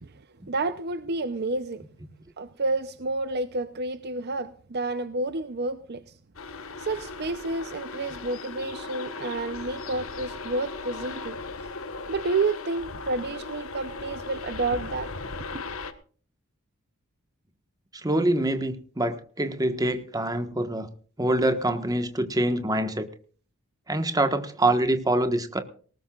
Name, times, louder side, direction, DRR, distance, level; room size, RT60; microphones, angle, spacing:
voice 1, 0.0-1.8 2.4-6.1 6.8-11.4 12.1-15.1 15.5-15.6, right 3 dB, 50° right, 0.7 m, -30 dB
sound 1, 6.3-15.9, left 3 dB, 70° left, 1.4 m, -37 dB
voice 2, 17.9-20.9 21.2-23.1 23.9-25.6, right 1 dB, 15° right, 1.4 m, -25 dB
19.0 x 18.5 x 2.4 m
head